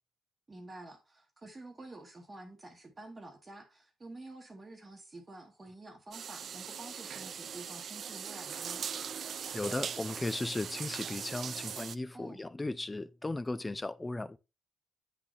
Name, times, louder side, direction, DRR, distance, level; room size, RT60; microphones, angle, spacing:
voice 1, 0.5-8.8 12.1-12.5, right 2 dB, 25° right, 1.1 m, -49 dB
sound 1, 6.1-11.9, right 7 dB, 55° right, 0.4 m, -40 dB
voice 2, 9.5-14.4, left 2 dB, 15° left, 0.4 m, -36 dB
8.2 x 3.9 x 3.0 m
cardioid pair, 90°, 0 cm